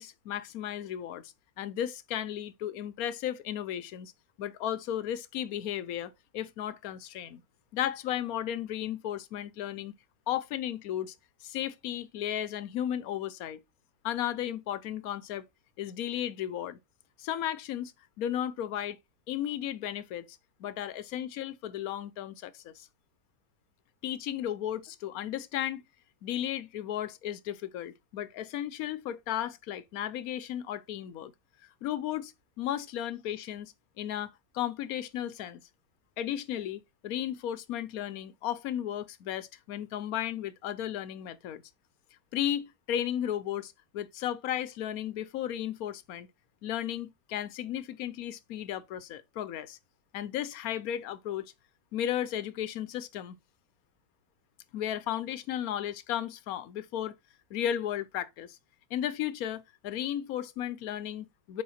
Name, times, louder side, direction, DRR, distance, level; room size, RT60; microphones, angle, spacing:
voice 1, 0.0-4.1 4.4-7.4 7.7-9.9 10.3-11.1 11.4-13.6 14.0-15.4 15.8-16.8 17.2-17.9 18.2-19.0 19.3-22.9 24.0-25.8 26.2-31.3 31.8-32.3 32.6-35.6 36.2-41.6 42.3-46.3 46.6-49.8 50.1-51.4 51.9-53.4 54.7-57.1 57.5-58.6 58.9-61.6, left 11 dB, 60° left, 1.1 m, -34 dB
7.7 x 5.1 x 4.2 m
omnidirectional pair, 2.0 m